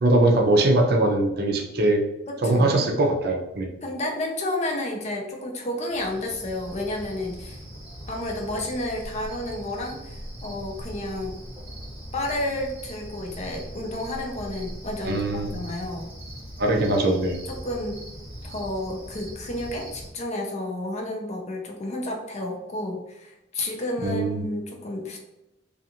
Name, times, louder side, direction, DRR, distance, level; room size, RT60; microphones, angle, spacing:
voice 1, 0.0-2.0 2.4-3.7 15.0-15.6 16.6-17.4 24.0-24.4, right 2 dB, 60° right, 2 dB, 0.5 m, -21 dB
voice 2, 2.3-2.8 3.8-7.6 8.1-11.4 12.1-16.1 17.1-18.0 18.4-25.2, left 1 dB, 40° left, 1 dB, 0.5 m, -31 dB
Cricket, 5.9-20.1, equal, 10° right, 1.1 m, -40 dB
2.4 x 2.4 x 2.8 m, 0.92 s
head